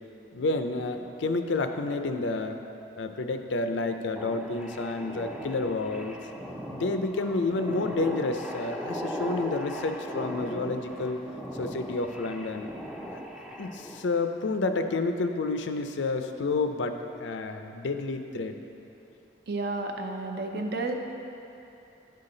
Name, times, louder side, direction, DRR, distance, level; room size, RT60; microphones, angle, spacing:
voice 1, 0.3-2.6 3.0-6.2 6.7-11.2 11.6-12.7 13.1-13.2 13.6-18.6, left 3 dB, 85° left, 7 dB, 0.5 m, -30 dB
sound 1, 4.2-14.1, equal, 5° right, 0.4 m, -38 dB
voice 2, 19.5-20.9, right 2 dB, 60° right, 3 dB, 0.6 m, -31 dB
10.0 x 5.7 x 3.9 m, 2.9 s
head